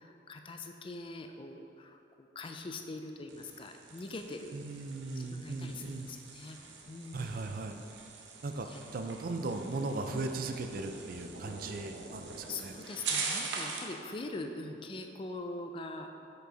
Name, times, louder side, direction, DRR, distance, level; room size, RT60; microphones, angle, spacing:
voice 1, 0.0-4.8 5.1-6.6 6.9-7.5 8.6-8.8 10.1-10.3 12.5-16.1, left 2 dB, 30° left, 5 dB, 0.4 m, -43 dB
sound 1, 3.3-14.0, right 4 dB, 80° right, 0.7 m, -42 dB
voice 2, 4.5-6.1 7.1-7.8 8.4-8.7 8.9-12.2 12.6-12.7, right 3 dB, 50° right, 6 dB, 0.4 m, -37 dB
6.1 x 5.4 x 3.9 m, 2.8 s
head